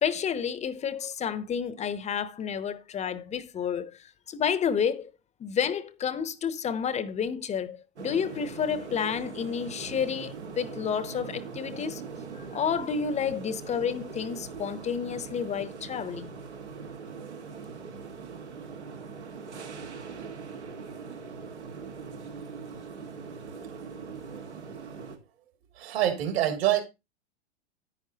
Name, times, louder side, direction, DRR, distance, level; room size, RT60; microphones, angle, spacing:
voice 1, 0.0-3.9 4.3-5.1 5.4-12.0 12.3-16.3, left 7 dB, 20° left, 0.8 m, -30 dB
sound 1, 8.0-25.2, right 5 dB, 85° right, 1.9 m, -41 dB
voice 2, 25.8-26.8, right 12 dB, 65° right, 3.1 m, -25 dB
9.9 x 9.2 x 2.8 m
hypercardioid pair, 100°, 34 cm